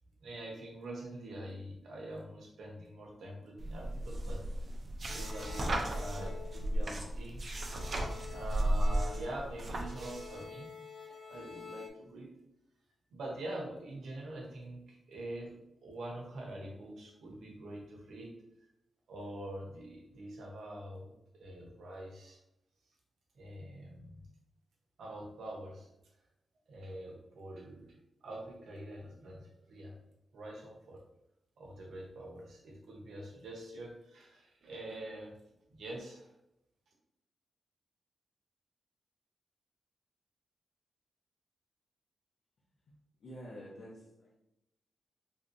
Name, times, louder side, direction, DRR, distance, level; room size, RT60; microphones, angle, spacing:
voice 1, 0.2-4.4 5.0-7.4 8.3-10.7 11.3-12.3 13.1-15.5 15.8-18.3 19.1-22.4 23.3-24.3 25.0-25.9 26.7-27.9 28.2-29.9 30.3-31.0 31.6-35.3 35.7-36.3, right 1 dB, 90° right, -1 dB, 0.9 m, -45 dB
sound 1, 3.6-10.4, right 1 dB, 40° right, 0.4 m, -35 dB
sound 2, 5.1-7.2 7.5-11.9, left 5 dB, 30° left, 0.5 m, -49 dB
voice 2, 42.9-44.3, equal, 65° left, -6 dB, 0.8 m, -49 dB
3.4 x 2.8 x 2.6 m, 0.86 s
wide cardioid pair, 160°, 0 cm